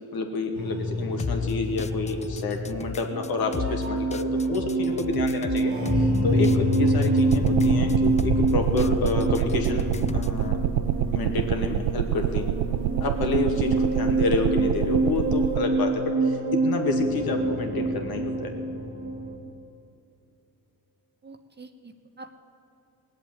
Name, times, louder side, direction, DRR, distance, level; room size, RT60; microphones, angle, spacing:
voice 1, 0.1-9.8 10.1-10.6 11.1-12.5 13.0-18.5, left 3 dB, 65° left, 3 dB, 2.2 m, -29 dB
sound 1, 0.5-19.4, right 1 dB, 80° right, 2.4 m, -26 dB
sound 2, 1.2-10.4, left 6 dB, 15° left, 0.5 m, -35 dB
sound 3, 7.3-15.6, right 13 dB, 55° right, 0.5 m, -27 dB
voice 2, 21.2-22.4, right 2 dB, 25° right, 7 dB, 1.1 m, -46 dB
18.0 x 7.8 x 9.3 m, 2.7 s
cardioid pair, 85°, 40 cm